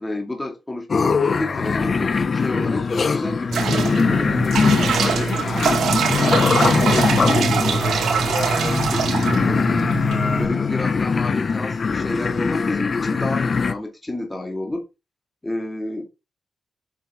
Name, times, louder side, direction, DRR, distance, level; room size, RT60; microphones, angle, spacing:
voice 1, 0.0-5.8 6.6-9.6 10.2-14.8 15.4-16.1, left 2 dB, 15° left, 2.3 m, -30 dB
sound 1, 0.9-13.7, left 5 dB, 45° left, 1.0 m, -21 dB
sound 2, 3.5-10.5, right 5 dB, 85° right, 1.9 m, -23 dB
7.3 x 6.4 x 4.8 m
cardioid pair, 100°, 0 cm